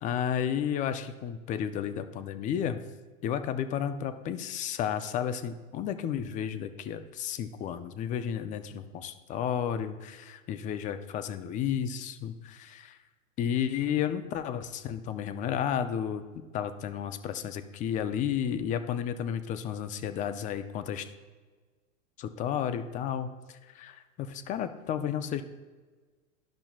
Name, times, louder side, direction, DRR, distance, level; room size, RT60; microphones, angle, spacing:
voice 1, 0.0-2.8 3.2-13.0 13.4-16.2 16.5-21.1 22.2-25.4, left 9 dB, 20° left, 10 dB, 0.3 m, -32 dB
12.5 x 5.7 x 2.3 m, 1.4 s
hypercardioid pair, 115°, 39 cm